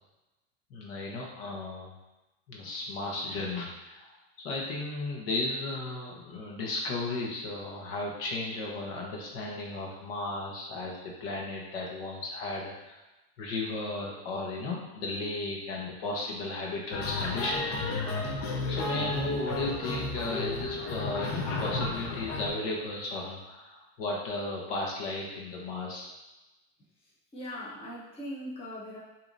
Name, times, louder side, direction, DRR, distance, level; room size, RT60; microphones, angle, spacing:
voice 1, 0.7-1.9 2.5-4.1 4.4-13.0 13.4-26.1, left 2 dB, 60° left, -2 dB, 1.2 m, -35 dB
sound 1, 16.9-22.5, left 3 dB, 45° left, 0.8 m, -33 dB
voice 2, 27.0-29.0, equal, 15° left, -7 dB, 1.1 m, -40 dB
6.8 x 2.9 x 2.6 m, 1.0 s
supercardioid pair, 150°, 33 cm